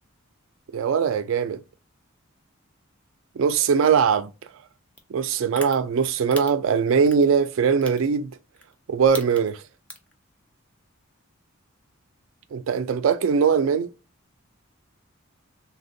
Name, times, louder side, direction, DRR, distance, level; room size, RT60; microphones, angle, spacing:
voice 1, 0.7-1.6 3.4-4.3 5.1-8.3 8.9-9.6 12.5-13.9, right 6 dB, 70° right, 0.3 m, -21 dB
sound 1, 5.0-5.1 5.6-5.8 6.3-6.5 7.1-7.3 7.8-8.0 8.6-8.7 9.0-9.5 9.9-10.1, left 1 dB, 5° left, 0.4 m, -36 dB
3.4 x 2.2 x 2.6 m
head